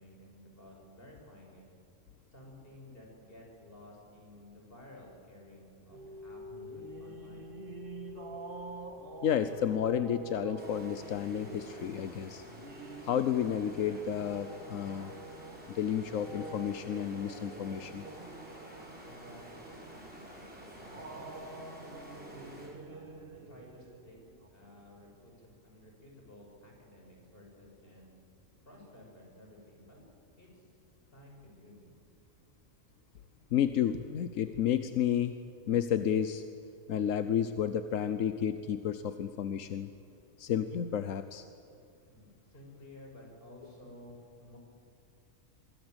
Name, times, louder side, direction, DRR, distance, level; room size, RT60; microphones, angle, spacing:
voice 1, 0.0-1.7 2.3-7.5 19.1-21.4 21.9-23.1 23.3-24.2 24.5-28.1 28.6-30.0 30.3-30.7 31.1-31.9 42.1-44.6, left 1 dB, 45° left, -1 dB, 6.6 m, -54 dB
sound 1, 5.9-24.5, right 1 dB, 45° right, 1.8 m, -47 dB
voice 2, 9.2-12.4 13.0-15.1 15.7-18.0 33.5-35.4 35.7-36.4 36.9-39.9 40.4-41.4, left 9 dB, 85° left, 11 dB, 1.2 m, -31 dB
sound 2, 10.6-22.7, equal, 5° right, 5.0 m, -51 dB
24.5 x 23.0 x 8.0 m, 2.4 s
omnidirectional pair, 1.3 m